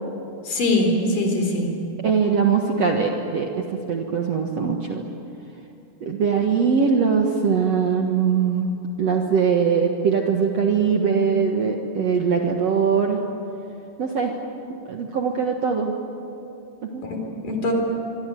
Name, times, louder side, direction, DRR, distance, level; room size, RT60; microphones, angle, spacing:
voice 1, 0.5-1.7 17.0-17.7, left 2 dB, 55° left, 3 dB, 5.4 m, -22 dB
voice 2, 2.0-3.5 3.9-5.0 6.0-13.2 14.0-14.4 14.7-15.9 16.8-17.0, right 6 dB, 55° right, 2 dB, 2.1 m, -21 dB
25.0 x 24.5 x 9.3 m, 2.6 s
omnidirectional pair, 4.6 m